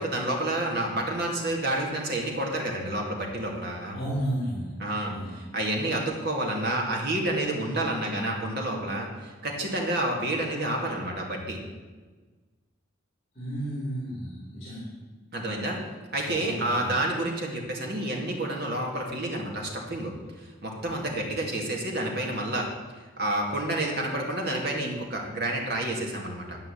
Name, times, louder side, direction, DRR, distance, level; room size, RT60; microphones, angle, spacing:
voice 1, 0.0-4.0 4.8-11.6 15.3-15.8 16.1-20.1 20.6-22.7 23.2-26.6, right 1 dB, 55° right, 0 dB, 2.3 m, -29 dB
voice 2, 3.9-4.7 5.1-5.3 13.3-14.9 16.2-17.0, right 1 dB, 30° left, -7 dB, 3.4 m, -33 dB
11.5 x 5.6 x 8.6 m, 1.3 s
head